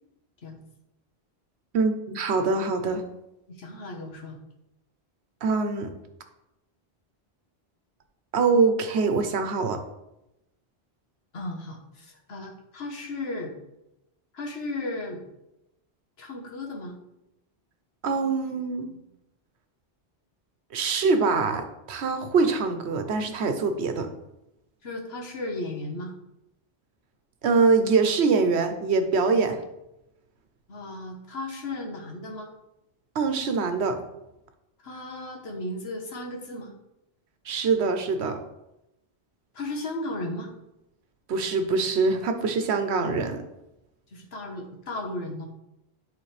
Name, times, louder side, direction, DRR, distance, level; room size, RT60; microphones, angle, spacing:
voice 1, 1.7-3.0 5.4-5.9 8.3-9.8 18.0-19.0 20.7-24.1 27.4-29.6 33.1-34.0 37.5-38.4 41.3-43.4, right 4 dB, 90° right, 7 dB, 1.1 m, -24 dB
voice 2, 3.5-4.4 11.3-13.5 14.3-15.2 16.2-17.0 24.8-26.1 30.7-32.5 34.8-36.7 39.5-40.5 44.1-45.5, left 2 dB, 70° left, 1 dB, 1.4 m, -35 dB
10.5 x 3.8 x 3.3 m, 0.90 s
omnidirectional pair, 1.1 m